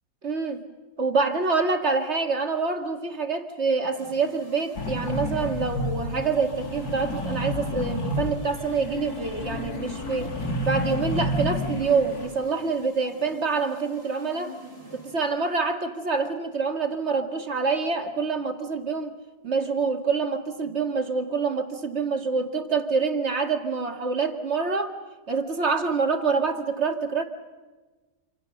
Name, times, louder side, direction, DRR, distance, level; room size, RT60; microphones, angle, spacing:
voice 1, 0.2-0.6 1.0-10.3 10.6-14.5 14.9-19.1 19.4-24.9 25.3-27.2, right 4 dB, 45° right, 5 dB, 2.4 m, -26 dB
sound 1, 3.9-15.7, left 3 dB, 15° left, 5.3 m, -45 dB
sound 2, 4.7-12.3, left 1 dB, 70° left, 3.1 m, -30 dB
27.0 x 26.5 x 6.6 m, 1.3 s
omnidirectional pair, 1.6 m